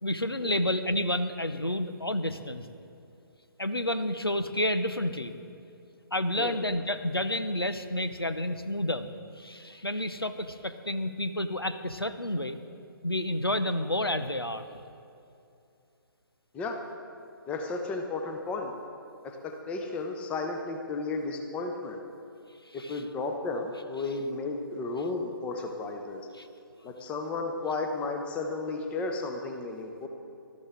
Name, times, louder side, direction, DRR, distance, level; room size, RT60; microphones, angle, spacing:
voice 1, 0.0-2.7 3.6-5.3 6.1-9.1 9.4-12.6 13.0-14.7 22.7-23.0 26.3-26.5, left 1 dB, 90° left, 10 dB, 0.9 m, -30 dB
voice 2, 17.5-18.7 19.4-22.0 22.7-26.2 26.8-30.1, left 3 dB, 10° left, 4 dB, 0.9 m, -33 dB
20.0 x 13.0 x 3.6 m, 2.7 s
figure-of-eight pair, 140°, 12 cm